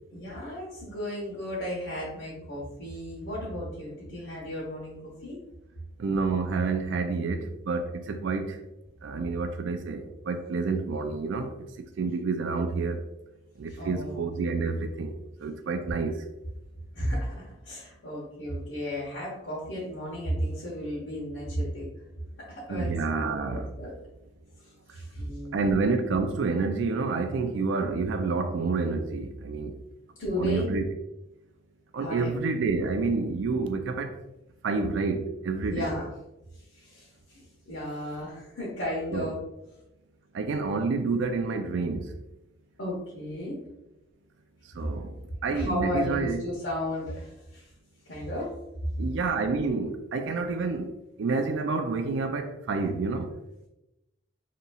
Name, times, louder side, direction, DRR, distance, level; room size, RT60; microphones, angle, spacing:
voice 1, 0.1-5.4 13.7-14.1 16.9-21.9 22.5-23.9 24.6-25.7 30.2-30.7 32.0-32.4 35.7-36.1 36.5-39.4 42.8-43.6 44.8-44.9 45.5-47.7 48.0-48.5, equal, 80° left, 1.2 m, -34 dB
voice 2, 6.0-8.6 9.0-13.0 13.6-15.1 15.4-16.2 22.7-23.7 25.5-29.8 30.4-30.8 31.9-34.2 34.6-35.9 39.1-39.3 40.3-42.1 44.7-46.4 49.0-50.9 51.2-53.3, right 4 dB, 75° right, 0.3 m, -29 dB
5.3 x 3.0 x 2.3 m
head